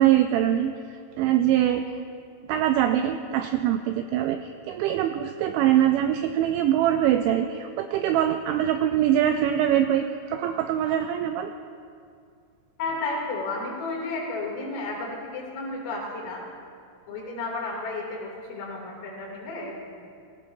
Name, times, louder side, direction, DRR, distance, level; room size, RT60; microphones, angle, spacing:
voice 1, 0.0-1.9 2.5-11.5, right 11 dB, 90° right, 7 dB, 2.6 m, -23 dB
voice 2, 12.8-16.4 17.1-20.0, left 3 dB, 75° left, -3 dB, 5.5 m, -32 dB
20.0 x 16.5 x 2.6 m, 2.3 s
omnidirectional pair, 5.9 m